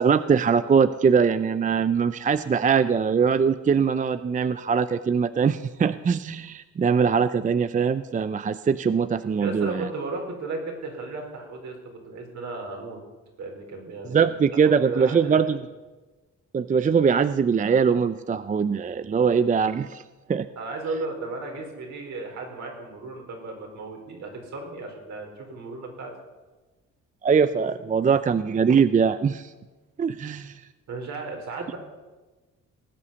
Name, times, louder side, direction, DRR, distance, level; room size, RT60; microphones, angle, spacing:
voice 1, 0.0-9.9 14.1-15.6 16.5-20.0 20.3-20.5 27.2-29.5 30.0-30.6, right 6 dB, 25° right, 13 dB, 0.5 m, -22 dB
voice 2, 9.4-13.0 13.4-14.3 14.6-15.6 20.6-26.1 30.2-30.4 30.9-31.8, right 3 dB, 65° right, 2 dB, 4.3 m, -35 dB
19.0 x 8.3 x 7.0 m, 1.2 s
cardioid pair, 90°, 30 cm